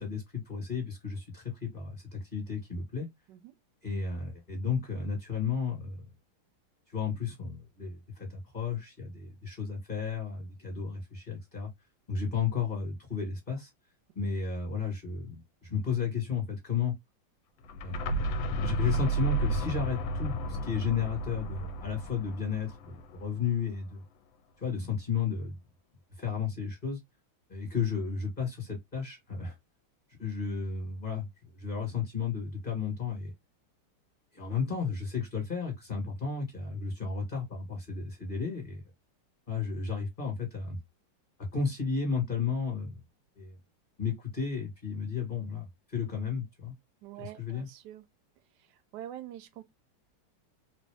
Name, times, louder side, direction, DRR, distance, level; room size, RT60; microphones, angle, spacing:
voice 1, 0.0-3.1 3.8-6.0 6.9-11.7 12.1-13.7 14.1-16.9 17.8-18.0 18.6-24.0 24.6-25.6 26.2-27.0 27.5-29.5 30.2-31.3 31.5-33.3 34.3-38.8 39.5-40.8 41.4-42.9 43.4-43.6 44.0-46.7 47.4-47.7, left 6 dB, 25° left, 1.4 m, -33 dB
sound 1, 17.6-23.4, right 1 dB, 75° left, 1.3 m, -32 dB
voice 2, 47.0-48.0 48.5-49.6, right 12 dB, 75° right, 1.0 m, -45 dB
3.3 x 2.7 x 3.3 m
omnidirectional pair, 2.4 m